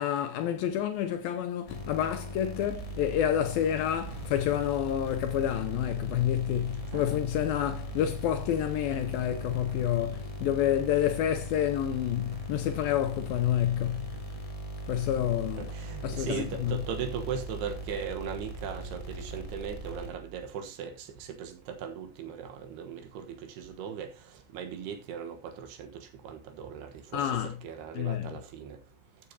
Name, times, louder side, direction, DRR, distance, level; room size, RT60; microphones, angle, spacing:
voice 1, 0.0-14.1 14.9-15.7 16.0-16.8 27.1-27.5 28.0-28.4, left 10 dB, 80° left, 2.2 m, -29 dB
sound 1, 1.7-20.4, right 1 dB, 55° left, 0.4 m, -39 dB
voice 2, 15.6-28.8, right 7 dB, 75° right, 3.2 m, -39 dB
14.0 x 8.2 x 2.9 m
omnidirectional pair, 4.9 m